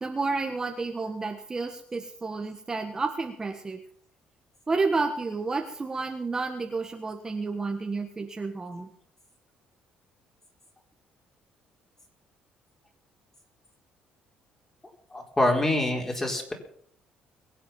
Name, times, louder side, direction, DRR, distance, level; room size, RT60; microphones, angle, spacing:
voice 1, 0.0-3.8 4.7-8.9, right 3 dB, 20° right, 4 dB, 1.4 m, -30 dB
voice 2, 15.1-16.5, left 1 dB, 15° left, 1 dB, 4.3 m, -25 dB
23.0 x 8.3 x 5.8 m, 0.63 s
cardioid pair, 110°, 3 cm